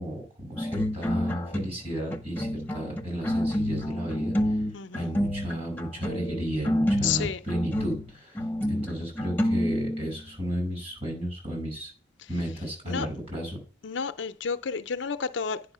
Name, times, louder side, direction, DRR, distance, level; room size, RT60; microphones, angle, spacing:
voice 1, 0.0-4.6 4.9-8.4 8.7-11.9 12.3-13.6, equal, 30° right, 5.3 m, -33 dB
sound 1, 0.6-10.2, equal, 10° left, 0.9 m, -28 dB
voice 2, 4.7-5.1 7.0-7.4 12.9-13.1 13.8-15.7, left 6 dB, 65° left, 0.5 m, -31 dB
9.8 x 5.3 x 5.5 m
head